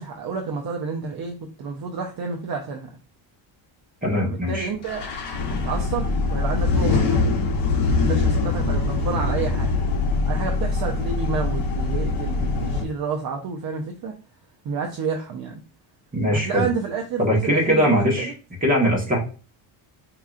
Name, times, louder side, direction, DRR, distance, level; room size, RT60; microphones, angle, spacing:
voice 1, 0.0-2.9 4.2-5.0 5.5-7.4 8.1-9.7 10.3-14.1 14.6-15.6 16.3-18.3, right 5 dB, 45° right, 1 dB, 0.6 m, -30 dB
voice 2, 4.0-4.7 16.1-16.7 17.2-18.3 18.6-19.2, equal, 15° right, -2 dB, 1.4 m, -21 dB
sound 1, 4.8-12.8, left 3 dB, 55° left, 1.0 m, -23 dB
4.6 x 2.9 x 2.4 m, 0.37 s
cardioid pair, 140°, 49 cm